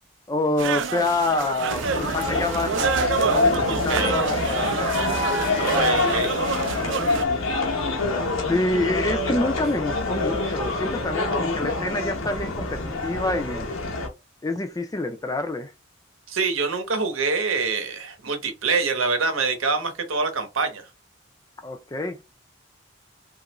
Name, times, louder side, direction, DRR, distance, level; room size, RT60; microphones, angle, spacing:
voice 1, 0.3-5.1 8.5-13.7 14.4-15.7 21.6-22.2, left 2 dB, 15° left, 0.3 m, -27 dB
sound 1, 0.6-7.2, right 6 dB, 65° right, 0.4 m, -28 dB
sound 2, 1.7-14.1, left 3 dB, 90° left, 0.8 m, -26 dB
voice 2, 3.7-4.2 5.6-6.3 16.3-20.9, right 4 dB, 85° right, 0.8 m, -25 dB
3.0 x 2.4 x 2.9 m
head